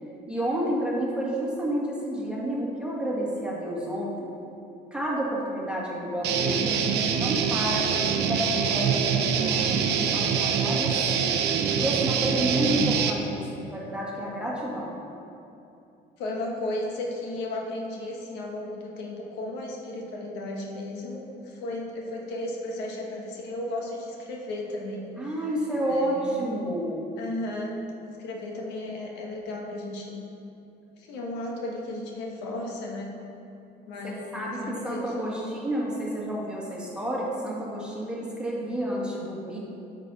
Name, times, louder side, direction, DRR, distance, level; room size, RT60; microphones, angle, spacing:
voice 1, 0.3-4.3 4.9-11.3 11.7-15.0 25.2-27.0 34.0-39.6, right 1 dB, 5° right, -5 dB, 1.9 m, -30 dB
Guitar, 6.2-13.1, right 7 dB, 80° right, 0.7 m, -25 dB
voice 2, 16.2-25.4 25.8-26.4 27.2-27.8 28.2-30.2 31.0-33.1 33.9-35.6, left 1 dB, 90° left, -1 dB, 1.3 m, -34 dB
8.8 x 6.8 x 4.1 m, 2.8 s
cardioid pair, 110°, 17 cm